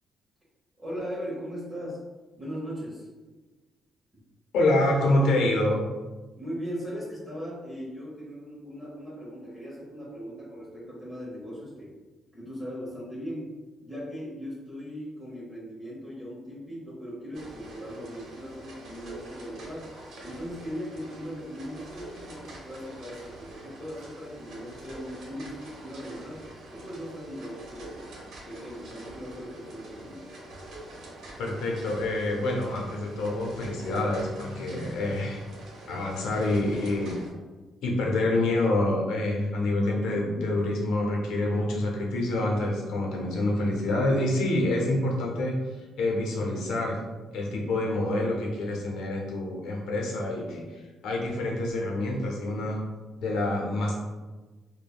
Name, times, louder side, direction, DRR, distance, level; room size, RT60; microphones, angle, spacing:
voice 1, 0.8-2.0 2.4-3.1 6.4-11.9 12.3-13.5 13.8-19.9 20.2-26.4 26.7-28.1 28.5-30.3, equal, 20° right, -7 dB, 0.9 m, -38 dB
voice 2, 4.5-5.8 31.4-35.4 35.9-37.1 37.8-47.0 47.3-52.8 53.2-53.9, left 1 dB, 85° left, -1 dB, 0.6 m, -27 dB
sound 1, 17.3-37.3, right 1 dB, 75° right, 0.7 m, -45 dB
3.3 x 2.2 x 2.3 m, 1.3 s
cardioid pair, 90°, 0 cm